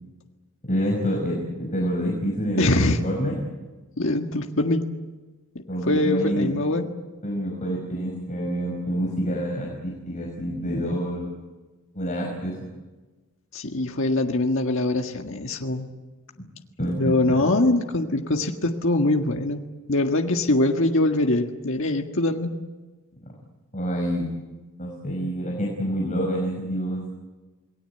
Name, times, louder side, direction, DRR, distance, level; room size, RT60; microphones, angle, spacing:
voice 1, 0.7-3.4 5.7-6.5 7.2-11.3 11.9-12.6 16.4-16.5 16.8-17.2 23.7-24.3 24.8-27.1, equal, 35° left, -1 dB, 5.3 m, -27 dB
voice 2, 2.6-3.0 4.0-4.8 5.9-6.9 13.5-15.9 17.0-19.6 19.9-22.5, left 2 dB, 65° left, 3 dB, 1.8 m, -23 dB
28.0 x 20.0 x 8.0 m, 1.2 s
head